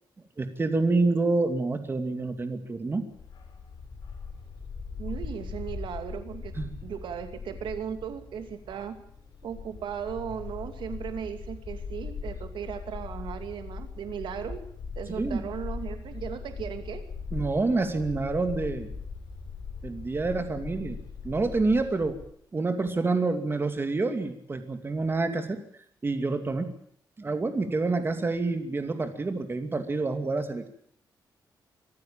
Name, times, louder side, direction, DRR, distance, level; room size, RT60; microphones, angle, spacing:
voice 1, 0.4-3.1 6.6-6.8 15.1-15.4 17.3-18.9 19.8-21.0 21.2-22.2 22.5-25.6 26.0-26.7 27.2-30.7, right 3 dB, 30° right, 7 dB, 2.6 m, -27 dB
Bark, 3.1-22.2, left 5 dB, 65° left, 6.6 m, -40 dB
voice 2, 5.0-6.6 6.8-9.0 9.4-14.6 15.0-17.0, right 8 dB, 85° right, 7 dB, 2.6 m, -37 dB
24.5 x 14.5 x 8.8 m, 0.64 s
wide cardioid pair, 120°, 8 cm